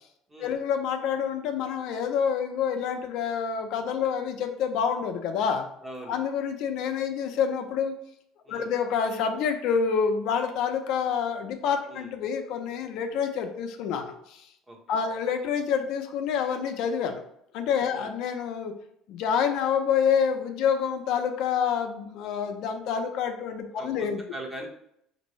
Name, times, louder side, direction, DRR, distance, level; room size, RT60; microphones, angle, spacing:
voice 1, 0.4-5.7 6.1-7.9 8.5-14.5 14.9-17.2 17.5-18.7 19.1-24.2, left 7 dB, 70° left, 5 dB, 0.5 m, -27 dB
voice 2, 5.8-6.2 8.4-8.7 11.9-12.1 14.7-15.0 17.9-18.1 23.7-24.7, right 1 dB, 20° right, 0 dB, 1.0 m, -41 dB
5.1 x 2.6 x 3.1 m, 0.73 s
cardioid pair, 120°, 0 cm